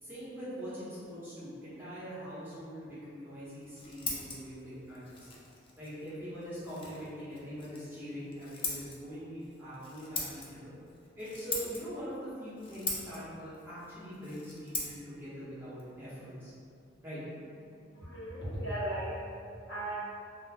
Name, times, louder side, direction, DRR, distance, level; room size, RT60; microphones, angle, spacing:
voice 1, 0.0-5.3 5.8-10.7 11.2-16.5 17.0-17.2, equal, 10° right, -12 dB, 0.8 m, -43 dB
Scissors, 3.4-17.0, left 3 dB, 30° left, 0.4 m, -43 dB
voice 2, 17.7-20.0, right 1 dB, 85° left, -9 dB, 1.0 m, -37 dB
2.4 x 2.2 x 3.2 m, 2.4 s
head